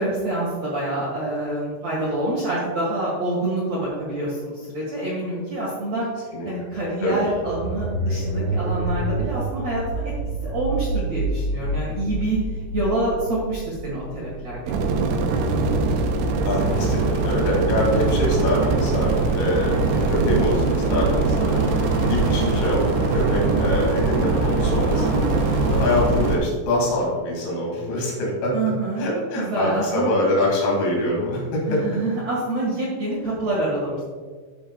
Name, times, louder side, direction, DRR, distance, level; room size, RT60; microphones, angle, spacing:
voice 1, 0.0-6.1 6.5-10.1 10.4-12.4 12.7-15.2 24.9-25.2 28.5-29.0 29.3-30.1 31.6-34.0, right 2 dB, 60° right, -7 dB, 1.8 m, -27 dB
sound 1, 6.9-15.1, right 2 dB, 35° left, 2.2 m, -28 dB
sound 2, 14.7-26.4, right 3 dB, 80° right, 2.8 m, -22 dB
voice 2, 16.4-21.6 22.1-25.4 25.7-28.5 29.0-31.8, left 1 dB, 75° left, -3 dB, 4.9 m, -24 dB
sound 3, 16.6-26.4, equal, 50° left, 2.6 m, -31 dB
13.5 x 6.4 x 2.3 m, 1.5 s
omnidirectional pair, 5.7 m